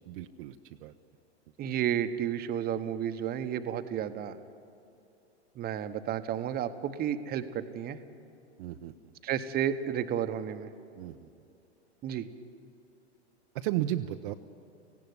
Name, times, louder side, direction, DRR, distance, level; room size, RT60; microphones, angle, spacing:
voice 1, 0.1-0.9 8.6-8.9 11.0-11.3 13.5-14.3, right 13 dB, 50° right, 6 dB, 0.8 m, -34 dB
voice 2, 1.6-4.4 5.6-8.0 9.2-10.7 12.0-12.3, right 9 dB, 30° right, 10 dB, 1.1 m, -32 dB
18.0 x 16.0 x 9.6 m, 2.7 s
hypercardioid pair, 115°, 33 cm